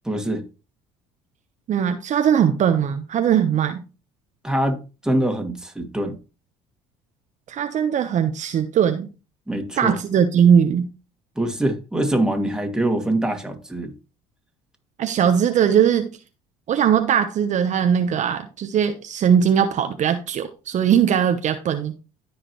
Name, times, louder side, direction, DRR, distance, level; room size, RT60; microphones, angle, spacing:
voice 1, 0.0-0.4 4.4-4.8 5.0-6.2 9.5-10.0 11.4-13.9, right 1 dB, 5° right, 2.3 m, -23 dB
voice 2, 1.7-3.8 7.5-9.1 9.8-10.9 15.0-16.1 16.7-21.9, right 8 dB, 50° right, 1.0 m, -20 dB
14.0 x 5.0 x 3.1 m
supercardioid pair, 75°, 16 cm